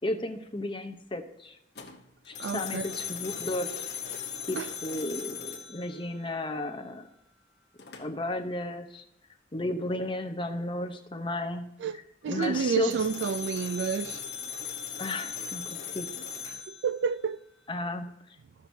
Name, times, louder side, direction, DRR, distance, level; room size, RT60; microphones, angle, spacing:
voice 1, 0.0-1.6 2.3-4.2 4.5-7.1 8.0-9.0 9.5-11.7 12.3-13.0 15.0-16.1 17.7-18.1, left 1 dB, 30° left, 0.8 m, -34 dB
sound 1, 1.8-6.7 7.8-8.3 12.3-17.7, left 7 dB, 65° left, 1.0 m, -39 dB
voice 2, 2.4-2.9 4.6-4.7 11.8-12.0 12.2-14.2 16.5-17.4, right 6 dB, 70° right, 0.3 m, -30 dB
14.5 x 6.1 x 2.7 m
head